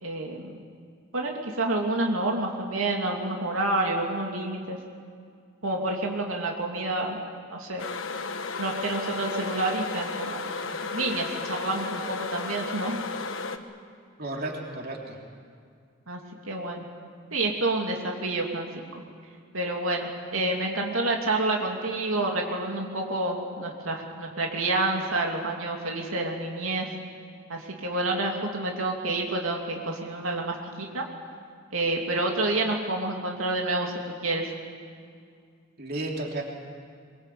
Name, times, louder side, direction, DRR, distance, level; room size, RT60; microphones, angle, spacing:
voice 1, 0.0-0.5 1.1-4.8 5.6-7.2 7.5-7.8 8.6-13.0 16.1-16.2 16.4-16.9 17.3-18.7 18.9-19.0 19.5-26.9 27.5-31.0 31.7-34.5, right 2 dB, 90° right, 0 dB, 2.9 m, -28 dB
sound 1, 7.8-13.6, left 4 dB, 70° left, 1.3 m, -34 dB
voice 2, 14.2-15.2 35.8-36.4, right 2 dB, 50° right, 0 dB, 3.3 m, -33 dB
23.0 x 22.5 x 8.5 m, 2.2 s
head